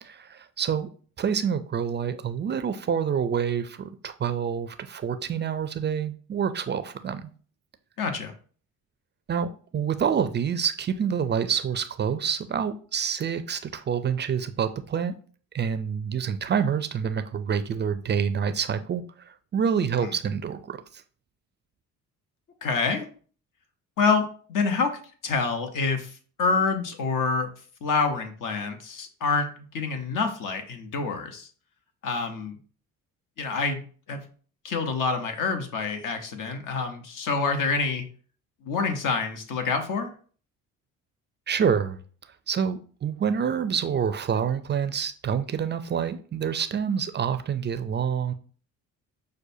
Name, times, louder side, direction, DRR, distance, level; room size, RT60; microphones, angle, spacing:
voice 1, 0.0-0.9 1.2-7.3 9.3-15.1 15.5-21.0 41.5-42.0 42.5-48.3, right 7 dB, 30° right, 10 dB, 0.4 m, -27 dB
voice 2, 8.0-8.3 20.0-20.1 22.6-23.1 24.0-27.5 27.8-31.5 32.0-32.6 33.4-33.8 34.1-34.2 34.6-38.0 38.6-40.1, left 4 dB, 65° left, 6 dB, 1.0 m, -27 dB
6.2 x 2.2 x 2.7 m, 0.42 s
supercardioid pair, 70°, 35 cm